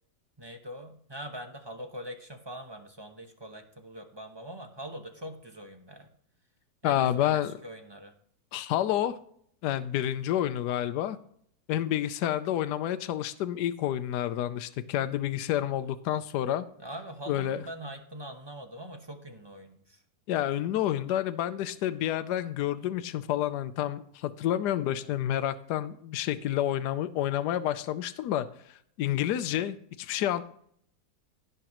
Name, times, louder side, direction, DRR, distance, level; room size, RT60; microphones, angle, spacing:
voice 1, 0.4-6.1 6.8-8.1 16.8-20.0 25.0-25.1 29.5-29.7, equal, 20° right, 5 dB, 0.7 m, -43 dB
voice 2, 6.8-7.5 8.5-9.2 9.6-11.2 11.7-16.6 17.3-17.6 20.3-28.5 29.0-30.4, left 12 dB, 80° left, 11 dB, 1.2 m, -29 dB
17.0 x 6.0 x 3.0 m, 0.65 s
omnidirectional pair, 1.8 m